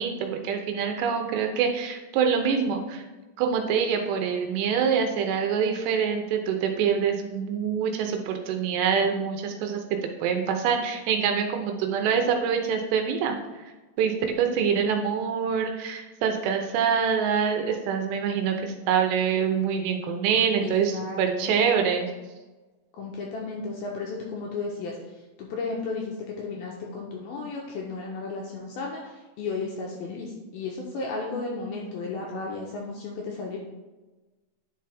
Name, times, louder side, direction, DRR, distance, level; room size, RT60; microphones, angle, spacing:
voice 1, 0.0-3.0 3.4-13.4 14.0-22.1, right 7 dB, 80° right, 4 dB, 2.8 m, -25 dB
voice 2, 20.6-21.5 23.0-25.0 25.4-33.6, left 3 dB, 75° left, -1 dB, 2.3 m, -34 dB
10.5 x 5.1 x 3.4 m, 1.2 s
omnidirectional pair, 5.2 m